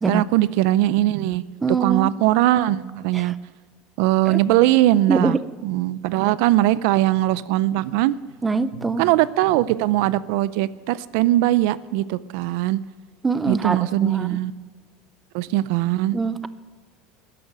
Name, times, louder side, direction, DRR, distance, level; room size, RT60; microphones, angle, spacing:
voice 1, 0.1-1.4 1.8-3.3 4.0-5.4 5.6-8.2 9.0-12.8 13.5-14.5 15.3-16.2, right 15 dB, 65° right, 18 dB, 0.5 m, -20 dB
voice 2, 1.6-2.1 3.1-3.3 4.3-4.4 5.1-5.4 8.4-9.0 13.2-14.4 16.1-16.5, right 4 dB, 15° right, 14 dB, 0.5 m, -23 dB
13.0 x 11.0 x 6.7 m, 1.5 s
cardioid pair, 155°, 0 cm